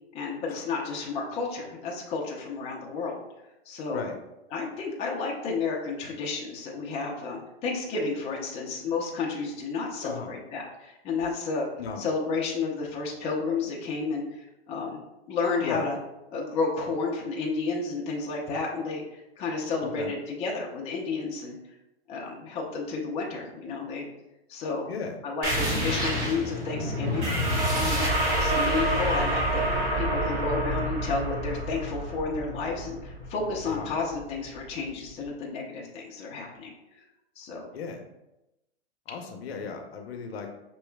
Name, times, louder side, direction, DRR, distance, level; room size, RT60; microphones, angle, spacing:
voice 1, 0.1-3.2 3.7-4.0 4.5-11.7 12.0-15.0 15.3-16.0 16.3-21.6 22.1-24.1 24.5-24.9 25.2-36.7 37.4-37.7, left 4 dB, 20° left, -2 dB, 0.5 m, -31 dB
voice 2, 19.8-20.1 24.9-25.2 33.6-33.9 37.7-38.0 39.1-40.6, left 5 dB, 65° left, 4 dB, 0.7 m, -35 dB
sound 1, 25.4-34.6, right 1 dB, 45° right, 1.3 m, -28 dB
5.3 x 3.0 x 2.2 m, 0.92 s
hypercardioid pair, 125°, 34 cm